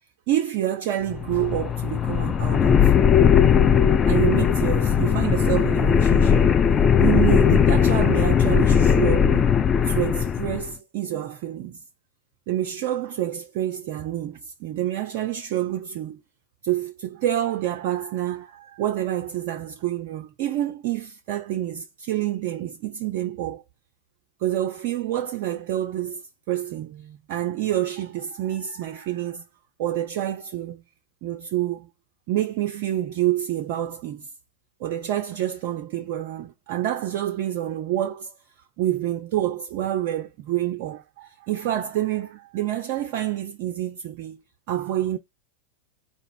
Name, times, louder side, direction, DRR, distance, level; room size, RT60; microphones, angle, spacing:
voice 1, 0.3-2.9 4.1-9.5 9.8-11.8 12.5-16.2 16.6-23.6 24.4-26.2 26.5-29.4 29.8-30.8 31.2-31.9 32.3-34.3 34.8-38.3 38.8-44.4 44.7-45.2, right 12 dB, 45° right, 0.4 m, -27 dB
sound 1, 1.1-10.7, left 7 dB, 25° left, 0.4 m, -18 dB
4.0 x 2.4 x 4.5 m
figure-of-eight pair, 90°, 0 cm